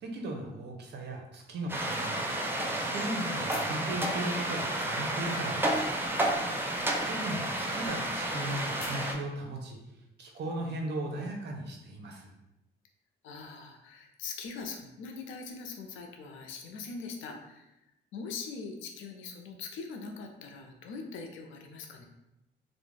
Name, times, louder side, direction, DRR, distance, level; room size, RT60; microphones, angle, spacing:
voice 1, 0.0-2.2 2.7-5.8 7.1-9.8 10.2-12.3, right 1 dB, 60° right, 1 dB, 0.6 m, -37 dB
sound 1, 1.7-9.1, right 1 dB, 10° right, 0.4 m, -31 dB
sound 2, 3.4-4.3 4.6-9.1, left 2 dB, 55° left, 0.9 m, -50 dB
voice 2, 13.2-17.7 18.1-22.0, left 4 dB, 80° left, 3 dB, 0.5 m, -42 dB
2.4 x 2.1 x 3.1 m, 0.89 s
cardioid pair, 90°, 20 cm